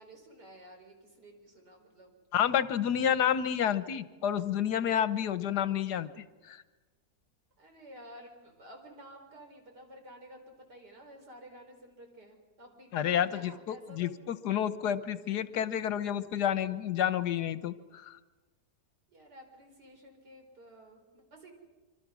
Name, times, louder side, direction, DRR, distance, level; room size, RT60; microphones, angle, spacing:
voice 1, 0.0-2.1 7.6-14.2 19.1-21.5, right 1 dB, 90° right, 3 dB, 4.8 m, -52 dB
voice 2, 2.3-6.6 12.9-18.2, left 9 dB, 80° left, 13 dB, 1.5 m, -30 dB
25.5 x 25.0 x 6.2 m, 1.2 s
omnidirectional pair, 1.7 m